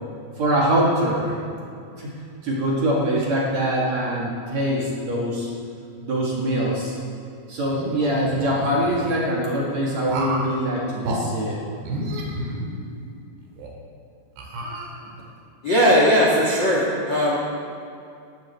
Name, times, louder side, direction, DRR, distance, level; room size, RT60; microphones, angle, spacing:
voice 1, 0.4-1.4 2.0-2.1 2.4-5.5 6.0-7.0 7.5-11.6, right 1 dB, 50° right, -4 dB, 2.6 m, -23 dB
sound 1, 7.7-9.2 10.1-10.5 11.0-11.2 11.8-13.1 13.6-13.7 14.4-15.3, right 1 dB, 70° right, 4.0 m, -30 dB
voice 2, 15.6-17.3, equal, 45° left, -4 dB, 1.6 m, -18 dB
18.0 x 14.0 x 4.3 m, 2.4 s
omnidirectional pair, 5.0 m